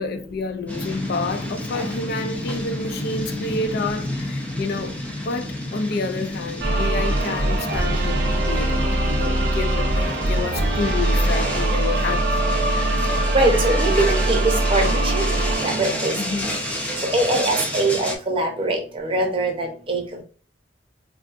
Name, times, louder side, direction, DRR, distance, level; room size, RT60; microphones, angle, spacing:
voice 1, 0.0-12.6 16.2-16.7, left 3 dB, 60° left, 0.4 m, -29 dB
sound 1, 0.7-18.2, left 1 dB, 10° left, 0.6 m, -30 dB
sound 2, 6.6-16.6, right 1 dB, 65° right, 0.6 m, -22 dB
voice 2, 13.3-15.2 15.6-16.1 17.1-20.0, right 2 dB, 30° right, 0.7 m, -22 dB
3.7 x 2.4 x 2.5 m
head